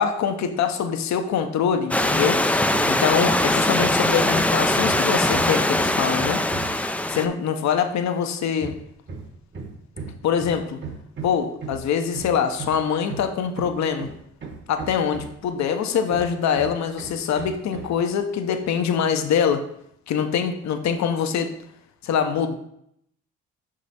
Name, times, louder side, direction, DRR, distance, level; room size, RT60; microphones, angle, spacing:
voice 1, 0.0-2.4 2.8-6.7 7.1-8.7 10.2-10.8 11.2-14.1 14.7-19.6 20.1-21.5 22.0-22.6, left 7 dB, 65° left, 7 dB, 0.7 m, -24 dB
Stream / Liquid, 1.9-7.3, left 1 dB, 5° left, 0.3 m, -21 dB
Hammer, 2.7-3.0 3.3-6.9 8.6-15.5 16.1-18.0, right 4 dB, 40° right, 1.2 m, -37 dB
5.6 x 4.9 x 4.1 m, 0.72 s
cardioid pair, 90°, 30 cm